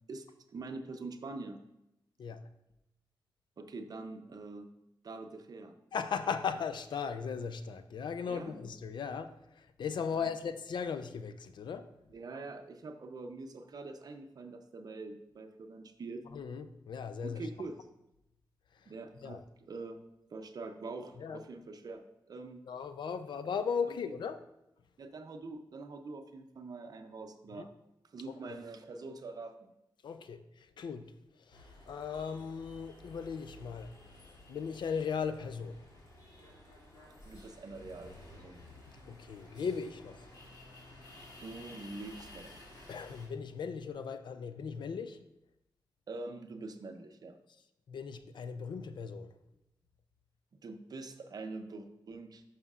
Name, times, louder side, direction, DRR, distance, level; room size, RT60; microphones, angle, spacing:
voice 1, 0.5-1.6 3.6-4.7 5.0-5.7 8.3-8.6 10.1-10.3 12.1-16.2 17.2-17.8 18.9-19.4 19.7-20.0 20.3-22.6 25.0-27.7 28.1-29.7 37.2-38.6 41.1-42.6 46.1-47.4 50.6-52.4, right 3 dB, 55° right, 0.6 m, -44 dB
voice 2, 5.9-11.9 16.3-17.5 18.7-18.9 19.2-19.4 21.2-21.4 22.7-24.4 27.5-27.7 28.5-28.6 30.0-31.1 31.4-33.9 34.2-35.8 39.1-40.3 42.9-45.2 47.9-49.3, left 6 dB, 75° left, 0.5 m, -37 dB
sound 1, 31.5-43.3, left 1 dB, 55° left, 2.4 m, -54 dB
10.5 x 5.7 x 2.4 m
wide cardioid pair, 130°, 8 cm